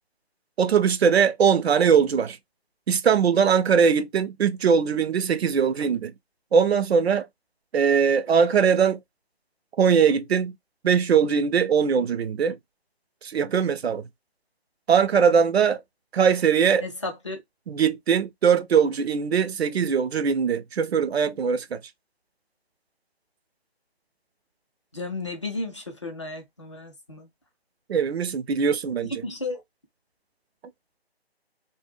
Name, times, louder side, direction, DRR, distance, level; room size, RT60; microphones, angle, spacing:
voice 1, 0.6-2.4 2.9-6.1 6.5-7.3 7.7-9.0 9.8-10.5 10.8-12.6 13.2-14.0 14.9-15.8 16.1-16.9 17.7-21.8 27.9-29.2, right 7 dB, 75° right, 0.5 m, -21 dB
voice 2, 16.8-17.4 24.9-27.3 29.2-29.6, left 3 dB, 30° left, 0.4 m, -33 dB
2.1 x 2.0 x 3.3 m
figure-of-eight pair, 150°, 32 cm